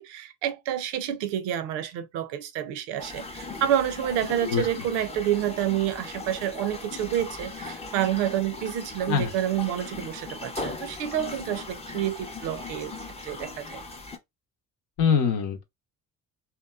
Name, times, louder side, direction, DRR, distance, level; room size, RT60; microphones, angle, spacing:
voice 1, 0.0-12.9 13.2-13.8, right 11 dB, 70° right, 0.7 m, -29 dB
sound 1, 3.0-14.2, left 3 dB, 15° left, 0.5 m, -39 dB
voice 2, 15.0-15.6, left 7 dB, 60° left, 0.8 m, -23 dB
2.8 x 2.1 x 2.3 m
hypercardioid pair, 50°, 45 cm